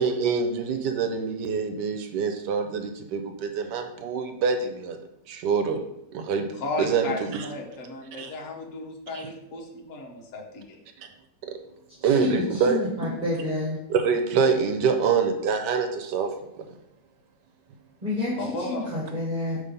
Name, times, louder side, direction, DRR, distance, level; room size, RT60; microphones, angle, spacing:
voice 1, 0.0-5.0 5.3-5.8 6.1-6.5 6.8-7.5 8.2-8.3 9.1-9.3 11.0-11.1 11.4-11.6 12.0-12.8 13.9-16.3, right 5 dB, 80° right, 6 dB, 1.2 m, -25 dB
voice 2, 6.5-10.8 18.4-18.9, left 2 dB, 50° left, -1 dB, 1.3 m, -34 dB
voice 3, 12.0-13.8 18.0-19.6, left 1 dB, 30° right, -6 dB, 1.5 m, -29 dB
5.6 x 3.4 x 5.2 m, 0.83 s
omnidirectional pair, 1.9 m